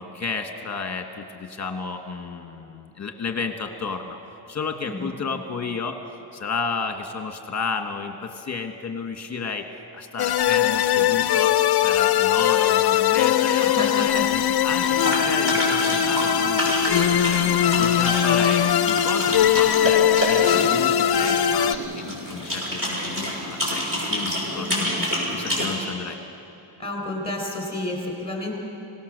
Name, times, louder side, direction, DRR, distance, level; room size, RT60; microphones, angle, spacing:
voice 1, 0.0-4.2 4.5-6.0 6.3-9.7 9.9-11.5 11.8-24.7 25.3-26.2, left 4 dB, 35° left, 5 dB, 1.6 m, -32 dB
voice 2, 4.8-5.2 13.6-14.2 14.9-15.1 24.6-25.0 26.8-28.6, left 1 dB, 10° left, 0 dB, 4.8 m, -31 dB
sound 1, 10.2-21.8, left 10 dB, 50° left, 0.6 m, -20 dB
sound 2, 14.8-25.7, left 1 dB, 25° right, 6.3 m, -28 dB
24.5 x 18.0 x 6.7 m, 2.8 s
wide cardioid pair, 145°, 49 cm